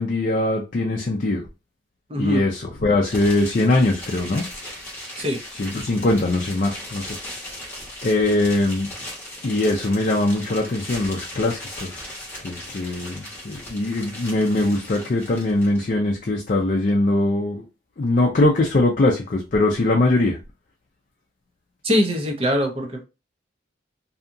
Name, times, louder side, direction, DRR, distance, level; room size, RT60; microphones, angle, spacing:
voice 1, 0.0-1.4 2.2-4.4 5.5-7.2 8.0-8.9 9.4-12.0 12.4-17.6 18.0-20.4, left 2 dB, 45° left, 0.4 m, -21 dB
voice 2, 2.1-2.4 5.2-5.4 21.8-23.0, equal, 30° right, 0.6 m, -22 dB
sound 1, 3.0-15.8, left 1 dB, 15° left, 1.0 m, -37 dB
2.8 x 2.3 x 2.5 m
head